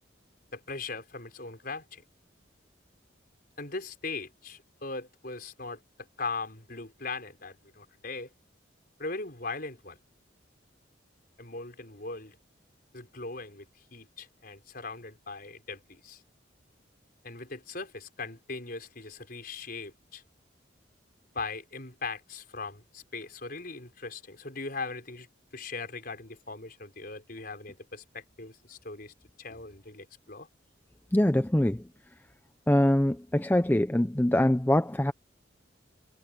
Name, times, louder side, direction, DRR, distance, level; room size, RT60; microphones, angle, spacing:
voice 1, 0.5-2.0 3.6-8.3 9.0-10.0 11.4-12.4 12.9-16.2 17.2-20.2 21.3-25.3 25.5-30.5, left 3 dB, 50° left, 5.4 m, -39 dB
voice 2, 31.1-31.8 32.7-35.1, left 1 dB, 10° left, 0.5 m, -24 dB
head